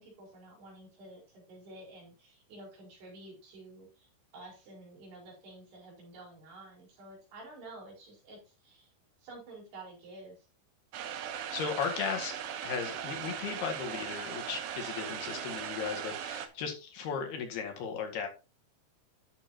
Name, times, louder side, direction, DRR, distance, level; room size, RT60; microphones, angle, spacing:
voice 1, 0.0-8.9 9.2-10.5, right 2 dB, 85° right, -2 dB, 6.7 m, -50 dB
sound 1, 10.9-16.5, right 9 dB, 70° right, 2.6 m, -39 dB
voice 2, 11.5-12.4 12.6-18.3, left 6 dB, 75° left, 3 dB, 3.9 m, -36 dB
13.0 x 6.9 x 2.9 m, 0.31 s
omnidirectional pair, 4.6 m